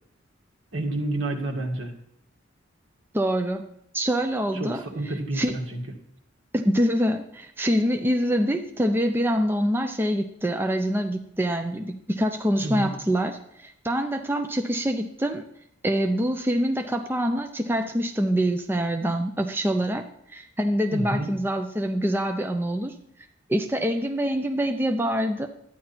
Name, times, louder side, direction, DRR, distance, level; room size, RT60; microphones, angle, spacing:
voice 1, 0.7-1.9 4.5-5.8 12.6-12.9 20.9-21.3, right 2 dB, 75° right, 1 dB, 2.0 m, -29 dB
voice 2, 3.1-3.6 3.9-4.8 5.3-5.6 6.5-15.4 15.8-20.0 20.3-23.0 23.5-25.5, equal, 10° right, 5 dB, 0.5 m, -25 dB
12.0 x 9.8 x 4.4 m, 0.73 s
head